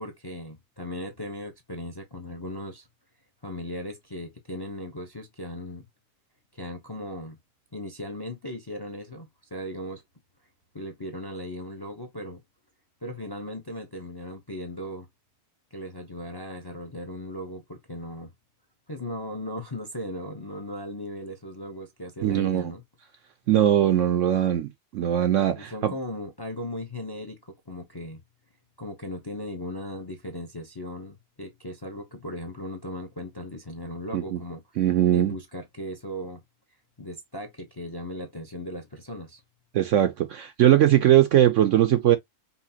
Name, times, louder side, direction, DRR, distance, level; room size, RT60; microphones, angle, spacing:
voice 1, 0.0-2.9 3.4-5.9 6.5-7.4 7.7-10.0 10.7-12.4 13.0-15.1 15.7-18.3 18.9-22.8 25.5-28.2 28.8-34.6 35.1-36.4 37.0-39.4, left 1 dB, 25° left, 0.5 m, -37 dB
voice 2, 22.2-22.7 23.5-25.9 34.1-34.4 34.8-35.4 39.7-42.2, right 11 dB, 70° right, 0.7 m, -20 dB
5.5 x 2.8 x 2.8 m
omnidirectional pair, 1.7 m